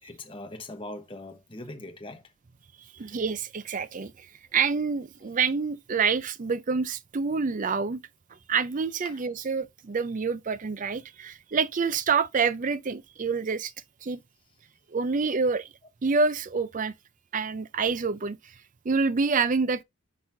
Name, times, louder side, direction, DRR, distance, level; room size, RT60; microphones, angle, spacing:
voice 1, 0.0-2.3 3.0-3.1 9.0-9.2, left 2 dB, 25° left, 1.1 m, -41 dB
voice 2, 2.9-4.3 4.5-8.0 8.5-13.7 14.0-14.2 14.9-15.7 16.0-16.9 17.3-18.5 18.8-19.8, right 5 dB, 35° right, 0.4 m, -27 dB
10.5 x 4.1 x 2.6 m
head